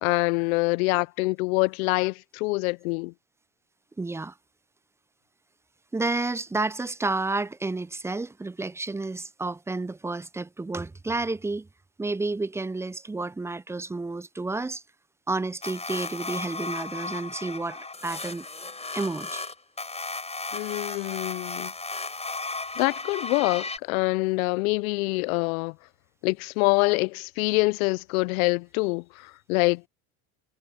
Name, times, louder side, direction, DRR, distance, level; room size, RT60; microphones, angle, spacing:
voice 1, 0.0-3.1 20.5-21.7 22.8-25.8 26.2-29.9, left 25 dB, 75° left, 0.7 m, -25 dB
voice 2, 4.0-4.3 5.9-11.7 12.0-14.8 15.3-18.5 18.9-19.4, right 3 dB, 5° right, 0.4 m, -30 dB
sound 1, 15.6-23.8, left 3 dB, 15° left, 5.7 m, -35 dB
hypercardioid pair, 80°, 43 cm